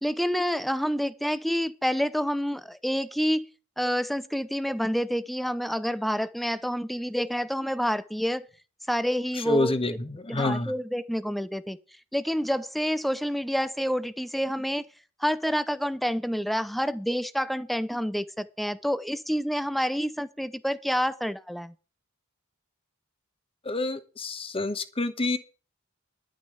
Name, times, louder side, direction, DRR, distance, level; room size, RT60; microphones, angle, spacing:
voice 1, 0.0-3.5 3.8-8.5 8.9-10.0 10.3-11.8 12.1-14.9 15.2-21.7, equal, ahead, 0.6 m, -28 dB
voice 2, 9.5-10.7 23.7-25.4, left 2 dB, 25° left, 1.0 m, -28 dB
11.0 x 6.3 x 8.0 m
head